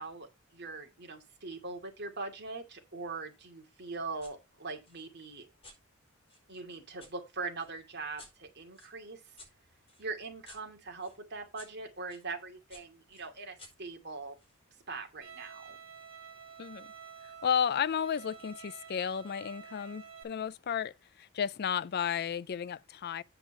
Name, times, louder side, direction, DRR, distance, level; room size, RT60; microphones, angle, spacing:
voice 1, 0.0-5.5 6.5-9.2 10.0-14.4 14.9-15.8, right 3 dB, 55° right, 2.5 m, -41 dB
sound 1, 4.2-4.4 4.8-7.1 7.6-12.3 12.7-14.6, left 2 dB, 25° left, 4.5 m, -57 dB
Bowed string instrument, 15.2-20.2, right 6 dB, 80° right, 3.4 m, -50 dB
voice 2, 17.4-23.2, left 8 dB, 50° left, 0.4 m, -33 dB
8.9 x 5.8 x 5.5 m
head